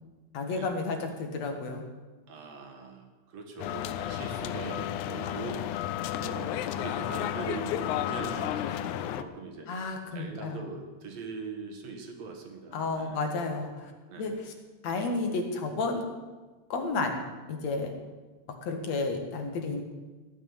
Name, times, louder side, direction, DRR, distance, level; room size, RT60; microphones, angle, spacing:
voice 1, 0.3-1.8 9.7-10.6 12.7-13.9 14.2-14.5 14.8-16.0 16.7-17.2 17.5-17.9 18.6-19.8, left 3 dB, 65° left, 3 dB, 2.8 m, -31 dB
voice 2, 2.3-5.8 6.2-9.7 10.1-13.3 14.1-14.4, right 4 dB, 60° right, 3 dB, 3.0 m, -41 dB
sound 1, 3.6-9.2, left 12 dB, 85° left, 2.1 m, -32 dB
16.5 x 6.2 x 9.7 m, 1.3 s
omnidirectional pair, 3.4 m